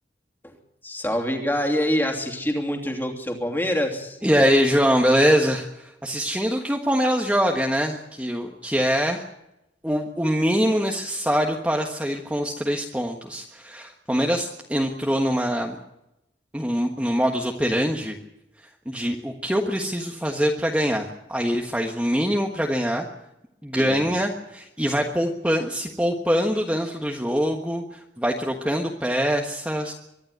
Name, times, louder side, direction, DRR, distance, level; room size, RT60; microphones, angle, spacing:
voice 1, 0.8-4.2 23.7-24.1, equal, 10° left, 2 dB, 3.0 m, -26 dB
voice 2, 4.2-9.2 9.8-15.8 16.5-18.2 18.8-23.1 23.6-29.9, equal, 5° right, 1 dB, 1.4 m, -23 dB
24.5 x 12.0 x 9.4 m, 0.87 s
head